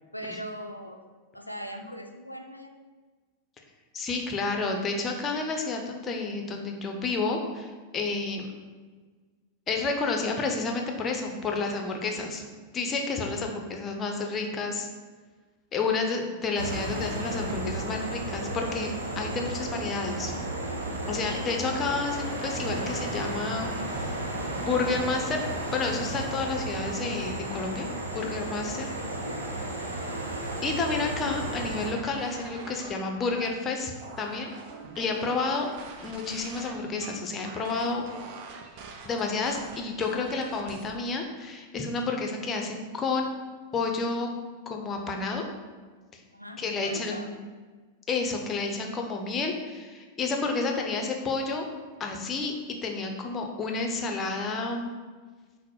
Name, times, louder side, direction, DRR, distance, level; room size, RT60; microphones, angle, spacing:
voice 1, 0.1-1.0 1.3-2.7 28.7-29.4 46.3-47.3, equal, 90° left, 4 dB, 0.4 m, -40 dB
voice 2, 3.9-8.5 9.7-12.4 12.7-14.9 15.7-20.3 21.1-24.1 24.6-25.4 25.7-27.9 28.1-28.9 30.6-33.9 34.2-34.5 35.0-35.7 36.0-38.0 39.0-43.3 43.7-44.3 44.7-45.4 46.1-46.2 46.6-47.3 48.1-51.7 52.0-52.5 52.8-54.9, left 3 dB, 25° left, 3 dB, 0.6 m, -30 dB
sound 1, 16.6-31.9, right 1 dB, 70° right, 0.8 m, -33 dB
sound 2, 31.3-40.9, right 4 dB, 45° right, 0.5 m, -45 dB
5.8 x 2.1 x 4.4 m, 1.4 s
figure-of-eight pair, 90°, 0 cm